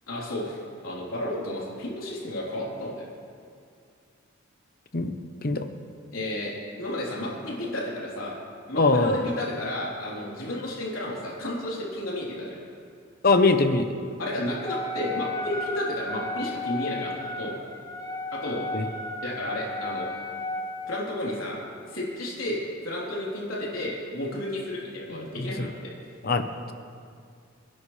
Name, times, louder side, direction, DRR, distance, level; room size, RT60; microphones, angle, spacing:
voice 1, 0.1-3.1 6.1-6.5 6.8-8.4 8.7-12.6 14.2-17.6 18.3-18.6 19.2-20.1 20.9-21.6 21.9-25.9, left 1 dB, 80° left, -5 dB, 3.7 m, -32 dB
voice 2, 8.7-9.2 13.2-13.9 18.7-18.8 25.4-25.7 26.2-26.7, left 3 dB, 45° left, 8 dB, 0.9 m, -22 dB
Wind instrument woodwind instrument, 14.7-21.1, left 2 dB, 15° left, 1.3 m, -34 dB
28.5 x 11.0 x 3.3 m, 2.3 s
head